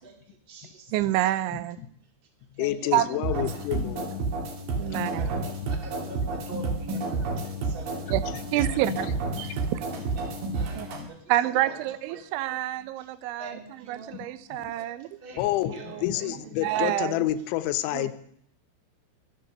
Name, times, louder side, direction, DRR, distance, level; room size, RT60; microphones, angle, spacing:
voice 1, 0.0-1.0 2.6-3.5 4.8-8.1 8.4-8.8 9.9-11.8 12.1-12.5 13.0-13.1 13.4-14.2 14.8-14.9 15.2-16.7, right 2 dB, 20° right, 2 dB, 1.4 m, -45 dB
voice 2, 0.9-1.8 2.9-3.2 4.8-5.4 8.1-8.2 8.5-9.1 9.4-9.9 10.7-10.9 11.3-15.2 15.7-17.3 17.9-18.1, right 14 dB, 85° right, 14 dB, 3.1 m, -28 dB
voice 3, 2.6-4.5 9.4-9.5 10.9-11.1 14.1-14.3 14.5-14.7 15.4-18.1, left 14 dB, 85° left, 12 dB, 3.1 m, -29 dB
sound 1, 3.2-11.0, right 3 dB, 55° right, 3.4 m, -30 dB
23.0 x 7.7 x 6.5 m, 0.68 s
omnidirectional pair, 5.3 m